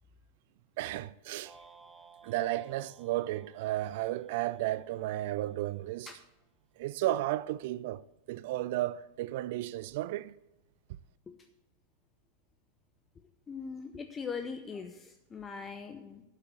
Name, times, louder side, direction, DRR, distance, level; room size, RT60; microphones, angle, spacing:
voice 1, 0.8-1.5 2.2-6.1 6.8-8.0 8.3-10.3, right 15 dB, 50° right, 0.4 m, -33 dB
sound 1, 1.4-5.8, right 4 dB, 5° right, 1.1 m, -58 dB
voice 2, 13.5-16.2, left 5 dB, 20° left, 0.8 m, -41 dB
8.3 x 8.1 x 7.5 m
figure-of-eight pair, 90°, 0 cm